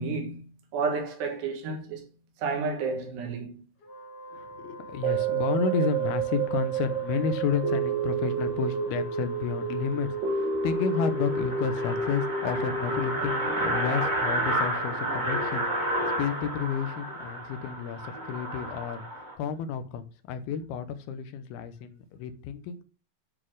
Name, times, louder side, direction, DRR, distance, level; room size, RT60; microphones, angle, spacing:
voice 1, 0.0-2.1 2.4-3.7, right 4 dB, 85° right, 3.8 m, -31 dB
Wind instrument woodwind instrument, 3.8-17.2, right 1 dB, 60° left, 3.0 m, -45 dB
voice 2, 4.3-19.0 19.4-22.8, left 7 dB, 75° left, 2.7 m, -31 dB
sound 1, 5.0-15.4 15.8-15.9, right 5 dB, 65° right, 2.6 m, -30 dB
sound 2, 9.4-9.5 9.9-10.0 10.3-10.4 10.6-19.3, right 1 dB, 40° right, 0.6 m, -31 dB
10.0 x 4.1 x 4.8 m
omnidirectional pair, 4.7 m